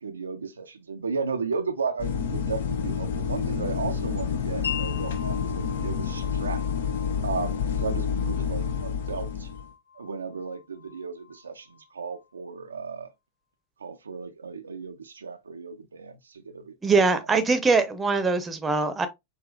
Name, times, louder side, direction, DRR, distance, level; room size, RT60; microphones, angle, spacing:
voice 1, 0.0-6.7 7.2-9.5 10.0-13.1 13.8-16.7, right 5 dB, 75° right, 0.4 m, -34 dB
sound 1, 2.0-9.7, left 6 dB, 60° left, 0.6 m, -29 dB
Wind chime, 4.6-12.3, left 8 dB, 85° left, 0.9 m, -41 dB
voice 2, 16.8-19.1, right 4 dB, 15° right, 0.7 m, -22 dB
4.8 x 2.9 x 2.3 m
figure-of-eight pair, 90°, 0 cm